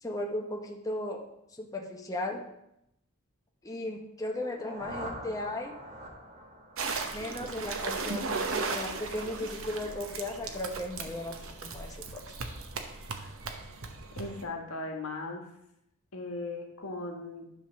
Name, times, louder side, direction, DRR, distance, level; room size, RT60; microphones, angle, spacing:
voice 1, 0.0-1.2 1.6-2.4 3.6-5.7 7.1-12.2, left 1 dB, 15° left, 1 dB, 0.8 m, -36 dB
sound 1, 4.2-8.2, right 1 dB, 35° right, 1.5 m, -45 dB
sound 2, 6.8-14.4, right 4 dB, 70° right, 0.9 m, -36 dB
voice 2, 14.1-15.4 16.1-17.6, left 2 dB, 75° left, 2 dB, 1.5 m, -38 dB
11.0 x 3.7 x 6.1 m, 0.82 s
head